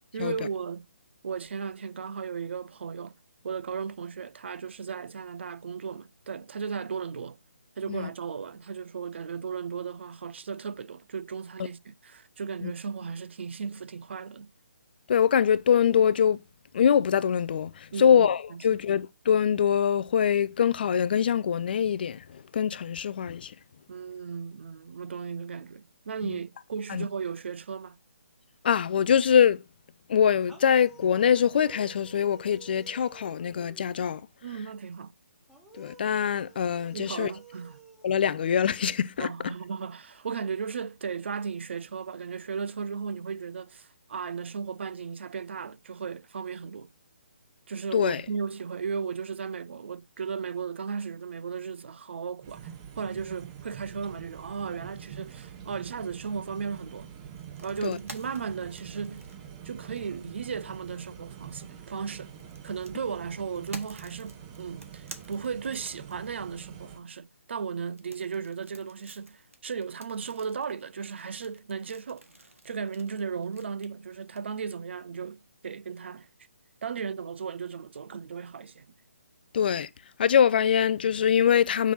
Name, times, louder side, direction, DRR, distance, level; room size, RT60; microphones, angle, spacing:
voice 1, 0.1-0.8 1.2-3.1 3.4-7.4 7.8-14.5 17.9-18.8 23.9-28.0 34.4-35.1 36.9-37.8 39.2-46.9 47.7-57.1 57.6-59.3 59.6-62.3 62.6-72.2 72.6-76.3 76.8-78.9, right 6 dB, 60° right, 0.4 m, -36 dB
voice 2, 15.1-16.4 16.7-23.5 26.2-26.3 26.9-27.0 28.6-29.6 30.1-34.2 35.8-37.3 38.0-39.3 47.9-48.2 57.8-58.0 79.5-79.9 80.2-81.9, left 8 dB, 45° left, 0.4 m, -23 dB
sound 1, 30.4-34.2 35.5-39.1, right 5 dB, ahead, 1.2 m, -52 dB
sound 2, 52.4-67.0, right 8 dB, 25° right, 0.7 m, -45 dB
sound 3, 57.3-60.3 61.7-66.5 67.9-74.4, right 2 dB, 90° right, 1.2 m, -49 dB
5.9 x 3.0 x 5.4 m
figure-of-eight pair, 145°, 7 cm